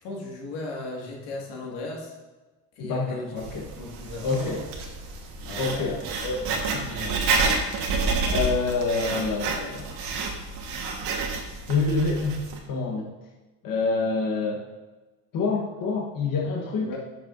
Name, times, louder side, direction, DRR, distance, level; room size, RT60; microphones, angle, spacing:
voice 1, 0.0-2.1 2.8-3.3 3.7-4.6 5.4-6.0 6.4-6.6 6.9-7.2 16.8-17.0, left 2 dB, 85° left, -1 dB, 1.9 m, -37 dB
voice 2, 2.8-3.7 4.2-4.6 5.6-6.9 8.2-9.9 11.7-12.4 12.7-13.1 13.6-14.7 15.3-16.9, left 4 dB, 55° left, -1 dB, 1.1 m, -27 dB
Writing, 3.4-12.6, right 3 dB, 85° right, 1.4 m, -29 dB
10.5 x 6.4 x 2.5 m, 1.2 s
cardioid pair, 130°, 40 cm